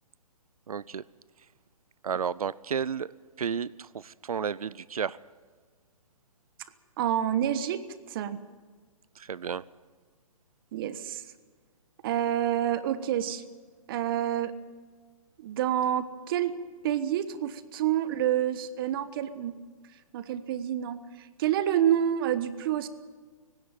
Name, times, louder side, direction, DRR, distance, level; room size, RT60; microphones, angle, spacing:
voice 1, 0.7-1.0 2.0-3.1 3.4-5.2 9.2-9.6, right 7 dB, 80° right, 21 dB, 0.6 m, -32 dB
voice 2, 7.0-7.8 8.1-8.4 10.7-11.2 12.0-13.4 13.9-14.5 15.4-16.5 16.8-19.6 20.1-22.9, right 11 dB, 40° right, 14 dB, 1.3 m, -28 dB
19.5 x 16.5 x 9.3 m, 1.5 s
hypercardioid pair, 135°, 18 cm